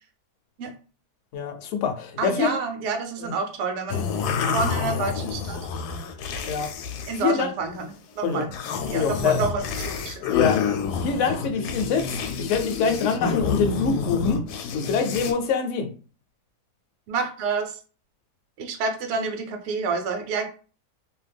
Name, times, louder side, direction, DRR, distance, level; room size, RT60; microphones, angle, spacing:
voice 1, 1.3-2.5 3.2-3.3 6.4-6.7 7.2-7.5 8.2-8.5 8.9-9.4 10.3-10.6 11.0-14.5 14.7-15.9, left 6 dB, 65° left, 5 dB, 0.8 m, -25 dB
voice 2, 2.2-5.6 7.1-8.5 8.9-10.2 17.1-17.8 18.6-20.5, right 4 dB, 65° right, 6 dB, 0.8 m, -29 dB
sound 1, 3.9-7.3 7.6-8.0 8.4-15.3, left 6 dB, 80° left, 1.1 m, -28 dB
2.8 x 2.2 x 3.3 m, 0.38 s
omnidirectional pair, 1.7 m